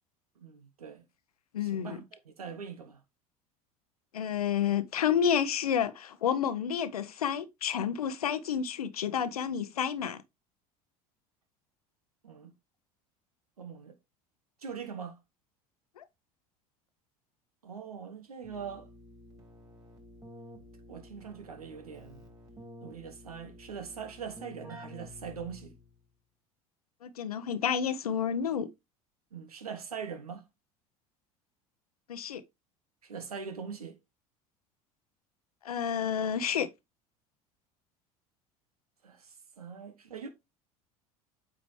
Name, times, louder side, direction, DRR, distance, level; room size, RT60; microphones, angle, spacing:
voice 1, 0.4-1.0 1.6-3.0 12.2-12.5 13.6-14.0 14.6-15.2 17.6-18.9 20.9-22.3 22.8-25.8 29.3-30.4 33.0-34.0 39.0-40.3, right 6 dB, 85° right, 1.2 m, -42 dB
voice 2, 1.5-2.0 4.1-10.2 16.0-16.1 27.0-28.7 32.1-32.4 35.6-36.7, left 8 dB, 85° left, 0.7 m, -30 dB
Keyboard (musical), 18.4-26.0, left 1 dB, 20° right, 4.0 m, -51 dB
8.4 x 5.1 x 3.1 m
hypercardioid pair, 70°, 19 cm